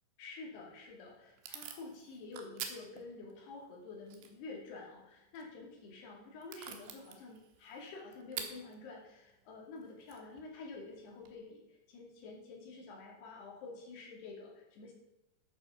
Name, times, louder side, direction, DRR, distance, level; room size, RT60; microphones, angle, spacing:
voice 1, 0.2-14.9, left 3 dB, 70° left, -1 dB, 4.5 m, -49 dB
Packing tape duct tape / Tearing, 0.5-11.3, right 8 dB, 80° right, 3.4 m, -51 dB
12.0 x 8.3 x 5.8 m, 0.90 s
omnidirectional pair, 4.9 m